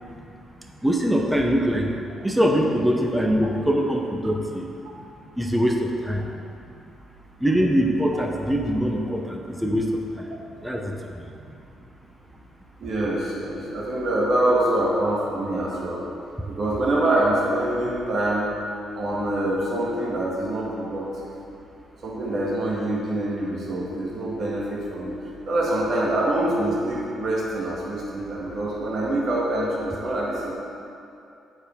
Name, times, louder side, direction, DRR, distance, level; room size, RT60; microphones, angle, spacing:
voice 1, 0.8-1.9 2.2-4.7 5.4-6.3 7.4-10.3 10.6-10.9, equal, 5° right, 1 dB, 0.9 m, -23 dB
voice 2, 12.8-16.0 16.5-18.5 18.9-21.3 22.0-25.1 25.5-30.5, right 1 dB, 55° right, -5 dB, 1.6 m, -25 dB
8.0 x 4.7 x 5.2 m, 2.6 s
cardioid pair, 90°, 0 cm